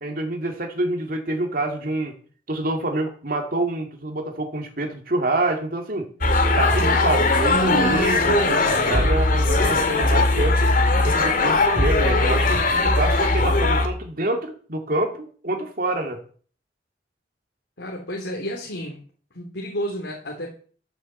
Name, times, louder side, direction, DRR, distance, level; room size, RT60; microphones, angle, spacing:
voice 1, 0.0-2.1 2.5-6.1 6.6-10.7 11.0-16.2, right 2 dB, 55° right, 4 dB, 2.4 m, -27 dB
sound 1, 6.2-13.9, left 2 dB, 50° left, 2.2 m, -19 dB
voice 2, 17.8-19.0 19.3-20.5, equal, 85° left, 0 dB, 3.0 m, -31 dB
13.0 x 7.2 x 7.7 m, 0.44 s
head